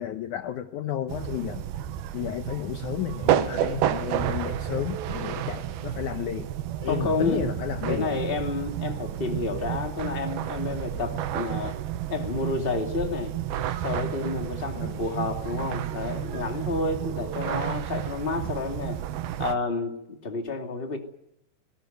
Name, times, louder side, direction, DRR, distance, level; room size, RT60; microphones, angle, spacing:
voice 1, 0.0-1.6 2.1-6.5 6.8-8.2 14.7-15.0, left 11 dB, 70° left, 8 dB, 2.1 m, -32 dB
sound 1, 1.1-19.6, right 11 dB, 80° right, 2.9 m, -31 dB
voice 2, 6.9-7.5 7.9-11.8 12.1-13.3 13.8-19.0 19.4-21.0, left 3 dB, 15° left, 3 dB, 2.2 m, -30 dB
20.5 x 18.0 x 9.2 m, 0.80 s
omnidirectional pair, 4.3 m